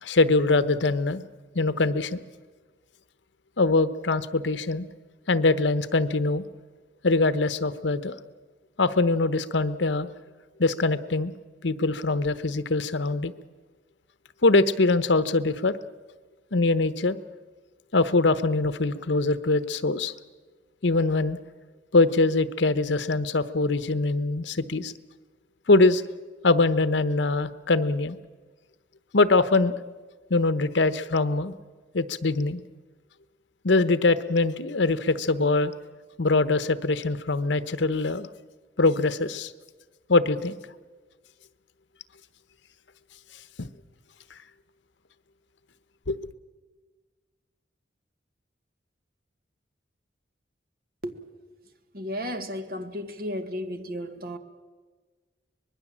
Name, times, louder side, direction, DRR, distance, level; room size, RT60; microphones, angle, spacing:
voice 1, 0.0-1.2 1.5-2.2 3.6-4.9 5.3-6.4 7.0-8.1 8.8-10.1 10.6-11.3 11.6-13.3 14.4-15.8 16.5-17.2 17.9-20.1 20.8-21.4 21.9-24.9 25.7-26.0 26.4-28.2 29.1-29.8 30.3-31.5 31.9-32.6 33.6-35.7 36.2-38.3 38.8-39.5 40.1-40.6 43.6-43.7 46.1-46.3, left 3 dB, 80° left, 13 dB, 1.0 m, -23 dB
voice 2, 51.9-54.4, equal, 50° right, 8 dB, 1.5 m, -33 dB
24.5 x 20.5 x 7.4 m, 1.4 s
head